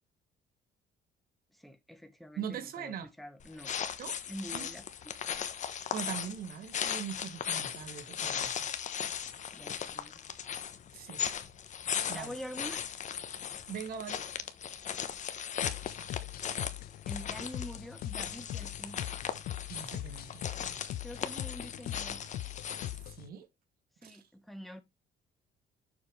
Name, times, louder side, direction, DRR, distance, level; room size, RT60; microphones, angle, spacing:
voice 1, 1.5-3.7 4.3-4.9 9.5-10.2 12.1-12.8 17.1-19.0 21.0-22.3 24.0-24.8, equal, ahead, 1.5 m, -45 dB
voice 2, 2.4-3.1 4.0-4.2 4.5-4.7 5.9-8.6 10.9-11.2 12.1-12.3 13.7-14.2 19.7-20.8 23.2-23.5 24.0-24.2, right 8 dB, 60° right, 1.8 m, -41 dB
sound 1, 3.4-23.1, left 8 dB, 45° left, 1.1 m, -38 dB
sound 2, 15.6-23.3, left 14 dB, 60° left, 0.5 m, -41 dB
7.2 x 4.9 x 3.4 m
cardioid pair, 110°, 17 cm